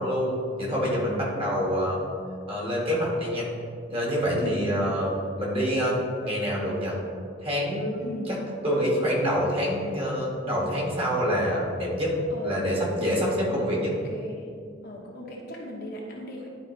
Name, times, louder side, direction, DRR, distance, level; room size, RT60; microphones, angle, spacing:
voice 1, 0.0-2.0 2.5-3.5 3.9-5.1 5.4-6.0 6.2-7.0 7.4-8.1 8.6-12.1 12.4-13.9, equal, 30° right, -4 dB, 1.8 m, -26 dB
voice 2, 4.3-4.9 8.0-8.4 12.3-12.8 13.1-13.3 14.0-14.5 14.8-16.5, left 1 dB, 55° left, -2 dB, 1.2 m, -38 dB
11.0 x 4.6 x 3.2 m, 2.3 s
head